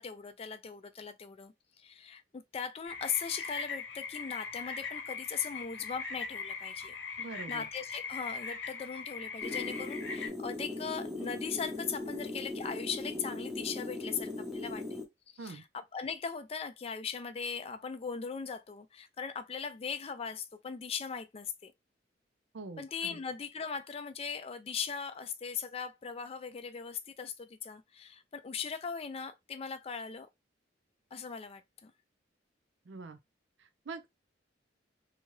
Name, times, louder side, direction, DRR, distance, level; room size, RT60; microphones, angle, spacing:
voice 1, 0.0-6.9 7.5-15.0 15.4-15.6 15.9-21.7 22.8-30.3 31.1-31.9, left 6 dB, 30° left, 0.3 m, -39 dB
sound 1, 2.9-10.3, left 5 dB, 75° left, 0.8 m, -40 dB
voice 2, 7.2-7.7 15.4-15.6 22.5-23.2 32.9-33.2 33.6-34.1, right 4 dB, 70° right, 0.5 m, -44 dB
sound 2, 9.4-15.0, left 2 dB, ahead, 0.6 m, -39 dB
2.8 x 2.3 x 3.1 m
head